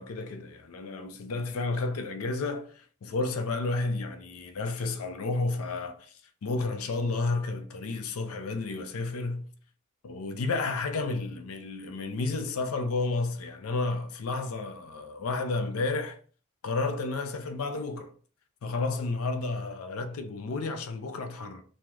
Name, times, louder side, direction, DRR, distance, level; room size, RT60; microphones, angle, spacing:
voice 1, 0.0-6.1 6.4-9.5 10.0-16.2 16.6-18.1 18.6-21.6, left 3 dB, 85° left, 0.4 m, -31 dB
2.9 x 2.0 x 3.5 m
head